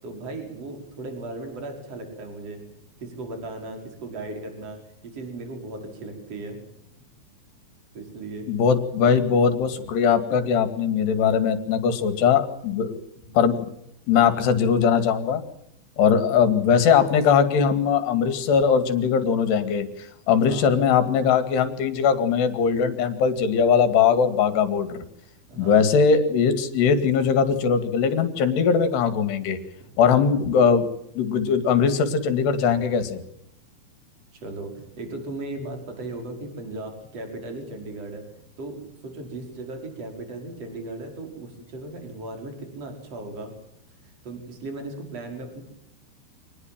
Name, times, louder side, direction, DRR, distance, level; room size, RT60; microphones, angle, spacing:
voice 1, 0.0-2.6 3.0-6.6 7.9-8.5 10.3-10.4 13.3-13.4 16.2-16.6 20.4-20.7 25.5-25.9 34.3-38.2 38.6-43.5 44.2-45.6, right 2 dB, 35° right, 4 dB, 6.1 m, -37 dB
voice 2, 8.5-13.0 13.3-13.7 14.1-15.4 16.0-25.0 25.6-29.6 30.0-30.9 31.2-33.2, left 6 dB, 65° left, 10 dB, 4.1 m, -20 dB
26.0 x 20.0 x 7.5 m, 0.73 s
omnidirectional pair, 5.4 m